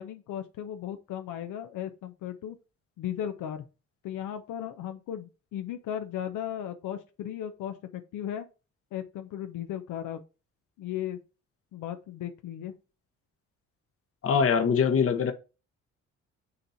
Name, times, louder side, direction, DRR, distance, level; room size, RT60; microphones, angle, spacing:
voice 1, 0.0-2.6 3.0-3.6 4.0-8.5 8.9-10.2 10.8-11.2 11.7-12.7, left 10 dB, 80° left, 0.8 m, -36 dB
voice 2, 14.2-15.3, left 6 dB, 50° left, 1.0 m, -23 dB
6.6 x 2.8 x 5.6 m
cardioid pair, 90°, 30 cm